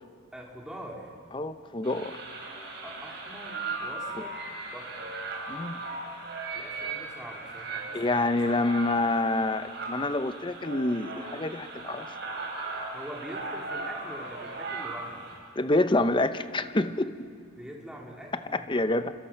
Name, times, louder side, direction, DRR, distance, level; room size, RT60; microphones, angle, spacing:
voice 1, 0.3-1.1 2.8-5.2 6.5-8.4 8.7-8.8 12.9-15.3 17.6-18.6, equal, 5° right, -2 dB, 3.3 m, -44 dB
voice 2, 1.3-2.2 5.5-5.8 7.9-12.1 15.6-17.3 18.5-19.1, left 2 dB, 25° left, 11 dB, 0.7 m, -27 dB
sound 1, 1.8-15.4, right 3 dB, 55° right, 6.0 m, -38 dB
28.0 x 25.5 x 5.8 m, 2.3 s
head